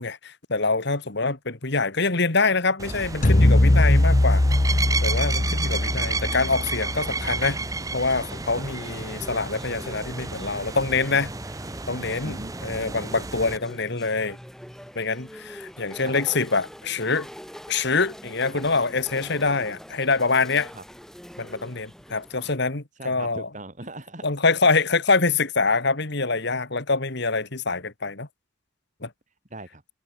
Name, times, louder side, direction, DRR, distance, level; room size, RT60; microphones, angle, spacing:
voice 1, 0.0-4.4 5.0-7.6 7.9-11.3 11.9-14.4 15.0-17.3 17.7-20.7 21.4-23.5 24.2-28.3 29.0-29.1, left 3 dB, 55° left, 2.1 m, -25 dB
sound 1, 2.8-13.6, right 3 dB, 15° right, 0.8 m, -32 dB
sound 2, 3.2-7.6, left 1 dB, 40° left, 1.1 m, -20 dB
voice 2, 3.8-4.3 8.5-8.6 12.2-12.5 15.9-16.3 20.7-20.8 23.0-24.3 29.5-29.8, right 2 dB, 35° right, 5.3 m, -40 dB
sound 3, 8.3-22.6, equal, ahead, 6.9 m, -43 dB
head